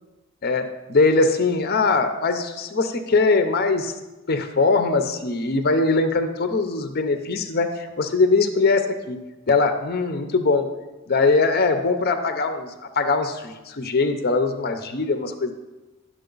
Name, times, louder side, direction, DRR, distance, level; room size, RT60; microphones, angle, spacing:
voice 1, 0.4-3.9 4.3-9.2 9.5-10.7 11.1-15.5, left 3 dB, 45° left, 8 dB, 0.6 m, -21 dB
10.0 x 6.3 x 3.9 m, 1.1 s
head